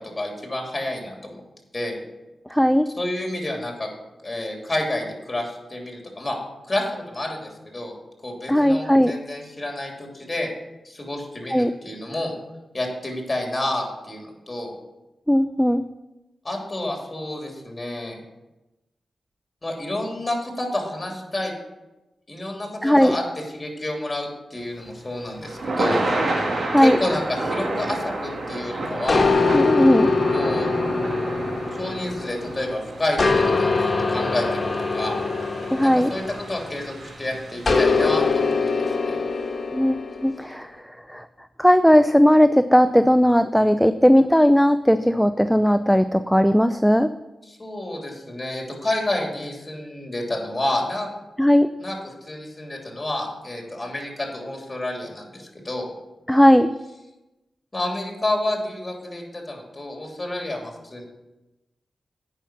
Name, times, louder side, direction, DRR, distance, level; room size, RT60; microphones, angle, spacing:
voice 1, 0.0-1.4 1.7-2.0 2.9-3.9 4.2-6.4 6.7-7.9 8.2-10.5 10.8-12.3 12.7-14.7 16.4-18.2 19.6-21.5 22.3-23.2 23.5-26.3 26.8-29.3 30.3-30.7 31.8-35.2 35.8-39.2 47.5-51.1 51.8-55.9 57.7-61.0, left 1 dB, 30° left, 1 dB, 3.0 m, -29 dB
voice 2, 2.5-2.9 8.5-9.1 11.5-11.7 15.3-15.8 22.8-23.1 26.6-27.0 29.5-30.1 35.7-36.1 39.7-40.7 41.1-41.2 41.6-47.1 51.4-51.7 56.3-56.7, equal, 5° left, 11 dB, 0.4 m, -17 dB
Thunder / Rain, 24.7-38.9, right 2 dB, 60° right, 1.7 m, -31 dB
sound 1, 29.1-32.6 33.2-36.9 37.7-40.3, left 4 dB, 50° left, 1.4 m, -23 dB
8.9 x 5.8 x 5.9 m, 1.0 s
cardioid pair, 45°, 0 cm